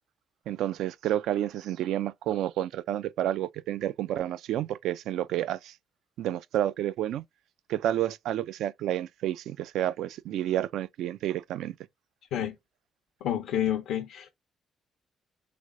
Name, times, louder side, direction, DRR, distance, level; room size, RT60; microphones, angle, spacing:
voice 1, 0.5-5.7 6.2-7.2 7.7-11.7, right 12 dB, 85° right, 0.3 m, -30 dB
voice 2, 13.2-14.3, left 10 dB, 90° left, 0.6 m, -29 dB
3.3 x 3.2 x 3.6 m
cardioid pair, 90°, 0 cm